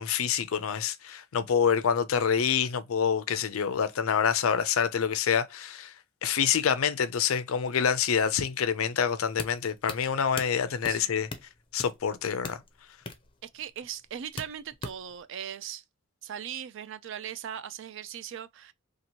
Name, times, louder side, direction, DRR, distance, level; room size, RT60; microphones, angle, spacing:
voice 1, 0.0-5.9 6.2-11.3 11.7-12.6, left 7 dB, 90° left, 0.5 m, -27 dB
sound 1, 9.3-15.2, left 4 dB, 25° left, 0.5 m, -42 dB
voice 2, 10.9-11.3 13.4-15.8 16.2-18.7, right 9 dB, 65° right, 0.4 m, -39 dB
2.9 x 2.5 x 2.8 m
head